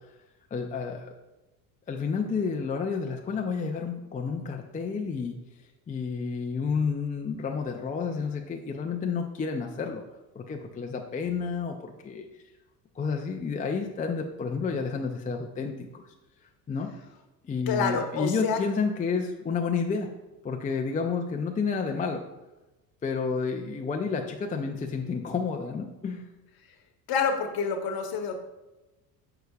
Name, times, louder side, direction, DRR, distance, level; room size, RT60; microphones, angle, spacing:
voice 1, 0.5-1.1 1.9-5.4 5.9-10.0 10.3-12.3 13.0-16.0 16.7-16.9 17.4-20.1 20.4-22.2 23.0-26.2, left 5 dB, 15° left, 2 dB, 0.5 m, -30 dB
voice 2, 17.7-18.6 27.1-28.4, left 5 dB, 45° left, 5 dB, 1.1 m, -27 dB
6.7 x 6.4 x 2.3 m, 1.0 s
hypercardioid pair, 70°, 49 cm